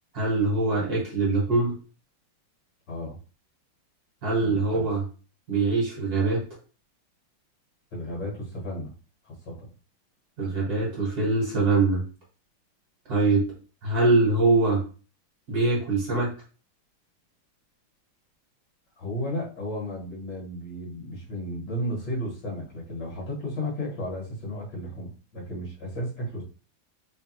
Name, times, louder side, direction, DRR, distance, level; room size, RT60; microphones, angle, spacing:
voice 1, 0.1-1.7 4.2-5.0 5.5-6.4 10.4-12.0 13.1-13.4 13.8-14.8 15.5-16.3, right 3 dB, 50° right, -3 dB, 1.7 m, -23 dB
voice 2, 2.9-3.2 4.4-4.9 7.9-8.9 9.2-9.7 19.0-26.4, equal, 55° left, -2 dB, 1.9 m, -34 dB
3.8 x 3.3 x 3.0 m, 0.37 s
omnidirectional pair, 2.4 m